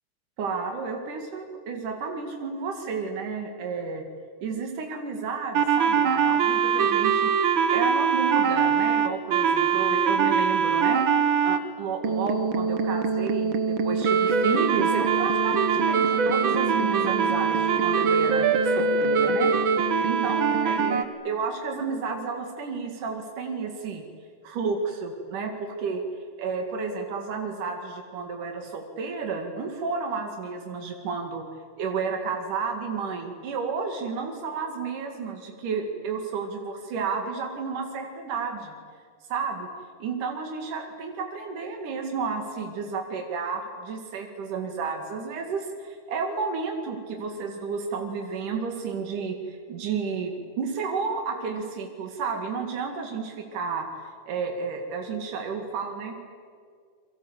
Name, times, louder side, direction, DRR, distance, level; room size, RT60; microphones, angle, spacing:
voice 1, 0.4-4.0 4.4-11.1 11.4-19.5 20.0-24.0 24.4-26.0 26.4-31.4 31.8-38.7 39.3-39.7 40.0-56.1, right 5 dB, 85° right, 3 dB, 3.8 m, -32 dB
sound 1, 5.5-11.6 12.0-21.0, right 6 dB, 50° right, 1.8 m, -22 dB
29.0 x 23.5 x 8.2 m, 2.1 s
omnidirectional pair, 3.6 m